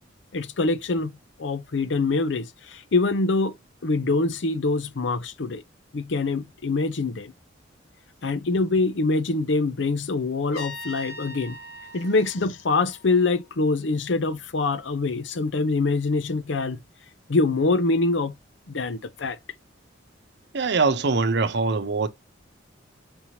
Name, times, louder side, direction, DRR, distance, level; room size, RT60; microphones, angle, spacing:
voice 1, 0.3-1.1 1.4-3.6 3.8-5.6 5.9-7.3 8.2-11.6 11.9-16.8 17.3-18.3 18.7-19.4, left 3 dB, 70° left, 0.6 m, -24 dB
Trumpet, 10.5-13.4, left 1 dB, 55° left, 2.0 m, -41 dB
voice 2, 20.5-22.1, right 4 dB, 65° right, 0.7 m, -22 dB
5.3 x 2.9 x 2.9 m
head